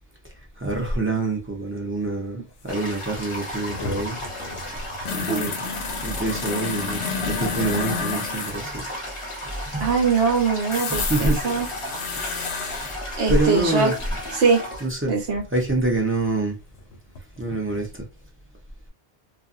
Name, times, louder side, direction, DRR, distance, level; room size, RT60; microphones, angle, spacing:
voice 1, 0.6-4.2 5.1-5.6 6.0-8.8 9.7-9.9 10.9-11.6 13.3-14.0 14.8-15.2 15.5-16.6 17.4-18.0, right 2 dB, 15° right, 0.6 m, -25 dB
sound 1, 2.7-2.8 3.0-8.6 10.7-13.0 15.2-15.3 16.8-17.5 17.7-17.8, left 5 dB, 70° left, 0.8 m, -31 dB
Toilet flush, 2.7-14.9, equal, 30° left, 0.7 m, -34 dB
voice 2, 9.8-11.7 13.2-13.9 14.3-14.6 15.1-15.4, right 5 dB, 70° right, 1.0 m, -22 dB
2.5 x 2.3 x 2.6 m
omnidirectional pair, 1.2 m